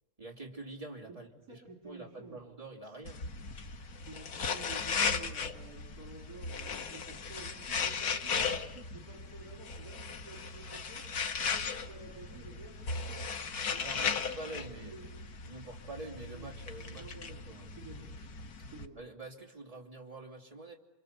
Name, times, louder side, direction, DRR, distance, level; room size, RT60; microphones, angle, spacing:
voice 1, 0.2-3.2 13.8-15.0 15.5-17.1 17.5-17.7 19.0-20.8, right 2 dB, 25° right, -1 dB, 3.0 m, -46 dB
voice 2, 1.5-2.4 2.8-3.0 4.0-11.0 11.3-13.3 13.7-15.1 16.3-16.5 16.8-18.1 18.6-19.1, right 3 dB, 80° right, 0 dB, 3.6 m, -51 dB
sound 1, 3.1-18.9, left 5 dB, 85° left, 1.7 m, -37 dB
29.0 x 25.0 x 6.8 m, 1.1 s
omnidirectional pair, 1.5 m